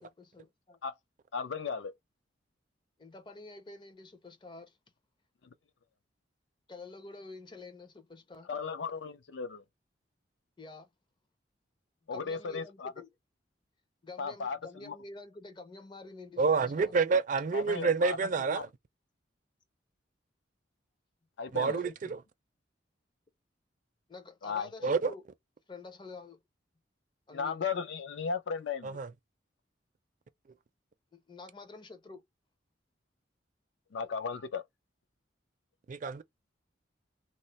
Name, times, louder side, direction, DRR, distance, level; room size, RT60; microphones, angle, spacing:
voice 1, 0.0-0.8 3.0-4.8 6.7-8.5 10.6-10.9 12.1-13.1 14.0-16.9 21.6-21.9 24.1-25.2 25.7-26.4 27.3-27.6 31.1-32.2, left 3 dB, 25° left, 0.5 m, -48 dB
voice 2, 1.3-1.9 8.5-9.6 12.1-12.9 14.2-15.0 17.5-18.2 18.5-18.6 21.4-21.8 24.4-24.7 27.3-29.0 33.9-34.6, left 5 dB, 75° left, 0.5 m, -35 dB
voice 3, 16.4-18.7 21.5-22.2 24.8-25.1 28.8-29.1 35.9-36.2, right 4 dB, 45° right, 0.4 m, -28 dB
3.0 x 2.0 x 4.0 m
head